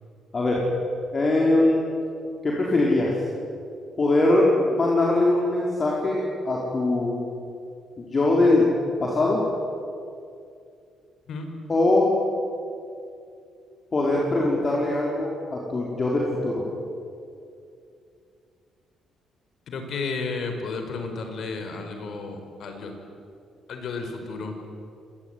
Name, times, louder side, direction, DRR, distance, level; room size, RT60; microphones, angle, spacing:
voice 1, 1.1-1.9 2.4-3.2 4.0-7.3 8.0-8.7 9.0-9.4 11.7-12.1 13.9-16.6, left 2 dB, 35° left, -3 dB, 5.2 m, -22 dB
voice 2, 19.7-22.9 23.7-24.6, left 4 dB, 65° left, 5 dB, 5.1 m, -32 dB
26.0 x 20.0 x 9.8 m, 2.5 s
cardioid pair, 90°, 0 cm